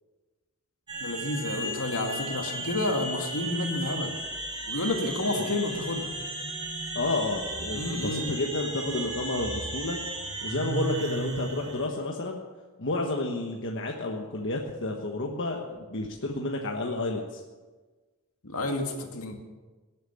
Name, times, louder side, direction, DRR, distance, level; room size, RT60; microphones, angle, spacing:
sound 1, 0.9-11.9, right 2 dB, 20° right, 6.7 m, -35 dB
voice 1, 1.0-4.1 4.7-6.1 7.7-8.3 18.4-19.3, left 2 dB, 80° left, 3 dB, 2.3 m, -30 dB
voice 2, 6.9-10.0 10.4-12.4 12.8-17.4, left 2 dB, 60° left, 0 dB, 1.3 m, -30 dB
18.5 x 9.2 x 7.0 m, 1.3 s
head